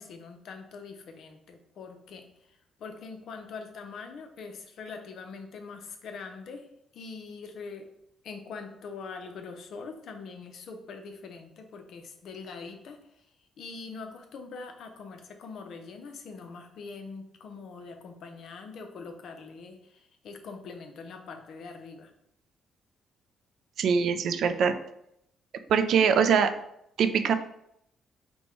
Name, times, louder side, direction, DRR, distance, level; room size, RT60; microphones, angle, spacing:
voice 1, 0.0-6.7 6.9-7.9 8.2-13.3 13.6-22.1, left 4 dB, 70° left, 5 dB, 0.7 m, -43 dB
voice 2, 23.8-24.7 25.7-26.5 27.0-27.3, right 6 dB, 70° right, 9 dB, 0.4 m, -23 dB
5.2 x 2.2 x 3.1 m, 0.76 s
cardioid pair, 90°, 0 cm